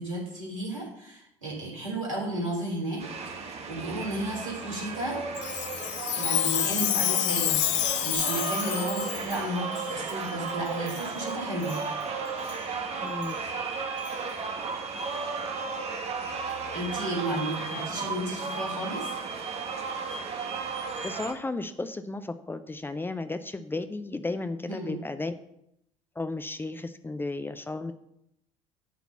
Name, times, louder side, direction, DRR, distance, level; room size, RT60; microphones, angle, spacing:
voice 1, 0.0-3.0 3.4-5.2 6.1-11.8 16.7-19.1 24.7-25.0, right 1 dB, 80° right, -3 dB, 3.1 m, -33 dB
sound 1, 3.0-21.3, right 4 dB, 40° right, 1.3 m, -34 dB
Chime, 5.4-9.4 10.1-10.2 10.9-11.1 11.6-11.8 12.5-12.6 13.2-13.3 14.1-14.2, left 14 dB, 70° left, 0.5 m, -28 dB
voice 2, 13.0-13.4 21.0-25.3 26.2-27.9, left 2 dB, 15° left, 9 dB, 0.6 m, -34 dB
11.0 x 4.1 x 6.8 m, 0.78 s
figure-of-eight pair, 60°, 16 cm